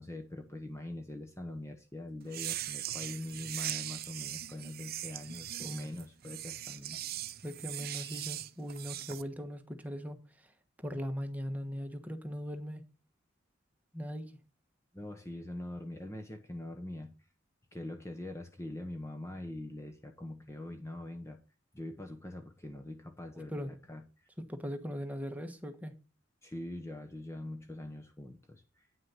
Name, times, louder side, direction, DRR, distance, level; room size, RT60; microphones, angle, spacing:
voice 1, 0.0-7.0 7.9-8.3 14.9-17.1 17.7-21.4 21.7-24.0 26.4-28.9, left 1 dB, 15° left, 0.9 m, -43 dB
sound 1, 2.3-9.2, right 13 dB, 50° right, 0.6 m, -40 dB
voice 2, 7.4-10.2 10.4-10.5 10.8-12.8 13.9-14.4 23.5-23.7 24.5-25.9, equal, 10° right, 1.2 m, -39 dB
9.5 x 6.3 x 5.6 m
head